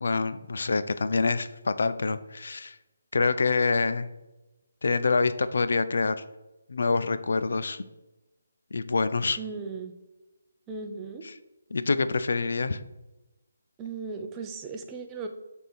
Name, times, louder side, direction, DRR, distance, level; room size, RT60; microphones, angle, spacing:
voice 1, 0.0-2.7 3.1-4.1 4.8-6.2 6.7-7.8 8.7-9.4 11.7-12.8, left 4 dB, 65° left, 12 dB, 0.5 m, -26 dB
voice 2, 9.4-9.9 10.7-11.3 13.8-15.3, right 4 dB, 15° right, 4 dB, 0.7 m, -37 dB
6.8 x 3.6 x 6.2 m, 1.0 s
figure-of-eight pair, 160°, 0 cm